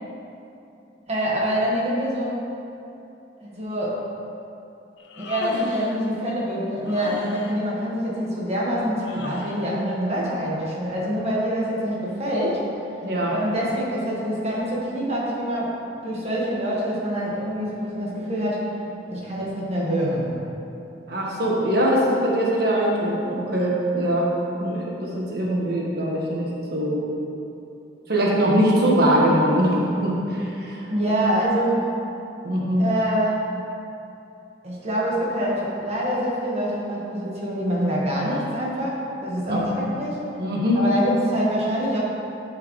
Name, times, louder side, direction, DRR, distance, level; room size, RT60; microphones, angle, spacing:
voice 1, 1.1-2.4 3.4-4.0 5.2-12.6 13.3-15.7 16.0-18.6 19.1-20.3 30.9-31.8 32.8-33.4 34.6-40.2 40.7-42.0, equal, 35° right, -5 dB, 1.5 m, -25 dB
Human voice, 5.0-6.0 6.8-7.6 9.0-9.7, left 3 dB, 70° left, 0.6 m, -36 dB
voice 2, 13.0-13.3 21.1-24.3 24.6-27.0 28.1-30.9 32.4-32.8 39.5-39.6 40.4-40.8, equal, 60° right, -4 dB, 1.4 m, -22 dB
11.5 x 4.8 x 3.2 m, 2.8 s
head